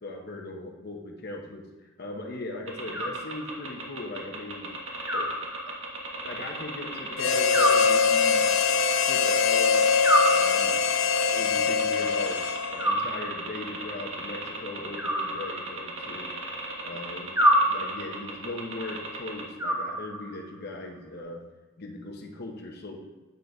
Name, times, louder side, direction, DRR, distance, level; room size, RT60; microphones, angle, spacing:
voice 1, 0.0-4.7 5.1-5.3 5.7-5.8 6.1-8.5 8.9-9.9 10.3-10.7 11.2-12.4 12.7-16.3 16.8-17.3 17.7-21.4 21.8-23.0, left 2 dB, 50° left, 1 dB, 0.9 m, -39 dB
sound 1, 2.7-19.4, right 2 dB, 70° right, 1.6 m, -37 dB
Animal, 2.9-3.8 5.1-6.1 7.5-8.6 10.0-11.0 12.8-13.7 15.0-16.1 17.4-18.3 19.6-20.5, equal, 15° right, 1.2 m, -27 dB
Harmonica, 7.2-13.0, left 6 dB, 70° left, 0.5 m, -23 dB
8.3 x 3.9 x 4.8 m, 1.2 s
head